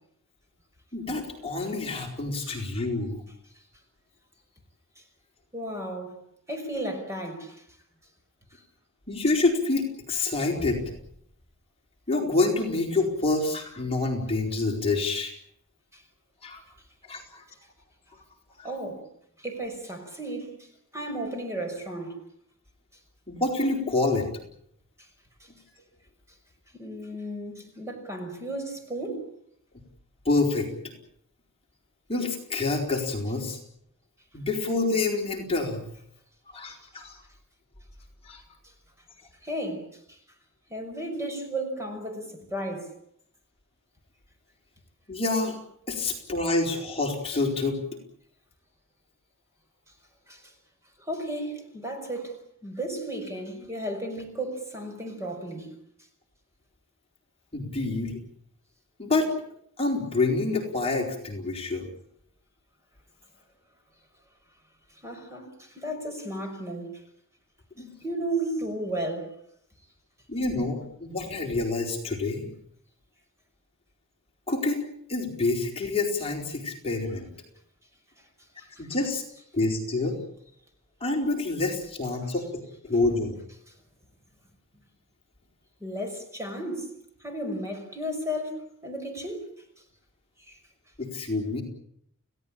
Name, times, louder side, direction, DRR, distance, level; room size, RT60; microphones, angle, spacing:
voice 1, 0.9-3.2 9.1-10.9 12.1-15.3 16.4-16.6 17.1-17.4 18.6-18.7 23.3-24.3 30.2-30.7 32.1-33.6 34.3-35.8 36.5-37.2 38.2-38.4 45.1-45.6 45.9-47.8 57.5-58.2 59.0-59.3 59.8-61.9 67.8-67.9 70.3-72.5 74.5-74.8 75.1-77.3 78.6-79.2 79.5-80.2 81.0-83.3 91.0-91.6, left 3 dB, 25° left, 4.5 m, -27 dB
voice 2, 5.5-6.2 6.5-7.6 15.9-16.0 17.1-17.2 18.6-19.1 19.4-20.6 20.9-22.2 26.7-29.3 39.4-40.2 40.7-42.9 50.3-50.5 51.0-55.7 65.0-66.9 68.0-69.3 85.8-86.9 87.2-89.5 90.5-90.6, right 1 dB, 15° right, 5.7 m, -34 dB
30.0 x 17.0 x 8.8 m
head